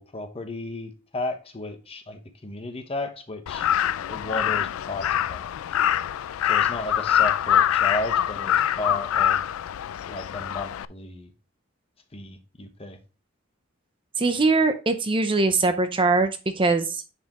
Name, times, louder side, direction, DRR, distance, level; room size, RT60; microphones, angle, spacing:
voice 1, 0.0-3.7 4.1-5.5 6.5-9.4 10.1-11.3 12.1-13.0, left 2 dB, 30° left, 1.0 m, -34 dB
Crow, 3.5-10.8, left 10 dB, 85° left, 0.3 m, -24 dB
voice 2, 14.2-16.3 16.6-17.0, right 3 dB, 25° right, 0.6 m, -21 dB
9.4 x 4.4 x 3.0 m
head